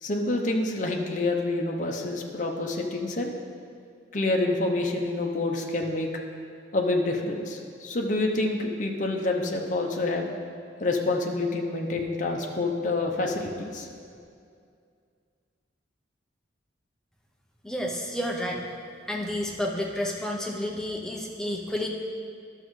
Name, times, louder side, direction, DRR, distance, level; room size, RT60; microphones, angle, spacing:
voice 1, 0.0-3.3 4.1-6.1 6.7-10.3 10.8-13.9, left 2 dB, 40° left, 1 dB, 0.7 m, -27 dB
voice 2, 17.6-18.6 19.1-21.9, left 1 dB, 5° left, -1 dB, 0.6 m, -30 dB
11.5 x 6.4 x 3.2 m, 2.3 s
head